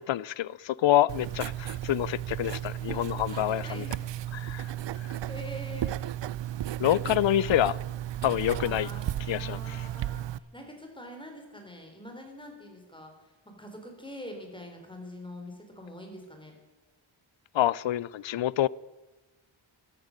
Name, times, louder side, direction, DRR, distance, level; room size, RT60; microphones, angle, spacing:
voice 1, 0.0-3.9 4.3-5.2 6.8-7.8 8.2-8.9 9.3-9.9 17.5-18.7, left 12 dB, 65° left, 0.5 m, -27 dB
Writing, 1.1-10.4, right 12 dB, 60° right, 0.5 m, -34 dB
voice 2, 3.3-4.0 5.3-5.9 6.5-7.2 8.5-16.5, left 1 dB, 10° left, 3.9 m, -44 dB
13.5 x 13.5 x 6.5 m
wide cardioid pair, 105°, 49 cm